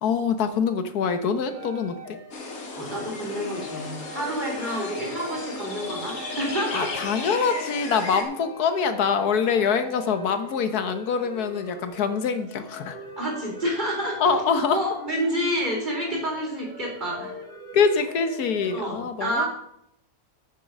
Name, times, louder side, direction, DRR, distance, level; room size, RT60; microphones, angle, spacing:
voice 1, 0.0-2.2 4.6-4.9 6.7-13.0 14.2-14.8 17.7-19.5, left 6 dB, 80° left, 10 dB, 1.5 m, -24 dB
sound 1, 1.4-18.8, left 1 dB, 30° left, 2.1 m, -40 dB
sound 2, 2.3-8.2, left 3 dB, 65° left, 2.0 m, -35 dB
voice 2, 2.8-6.9 13.2-14.4 14.7-17.3 18.7-19.5, equal, 30° right, -2 dB, 3.8 m, -29 dB
8.4 x 7.3 x 6.5 m, 0.76 s
omnidirectional pair, 1.6 m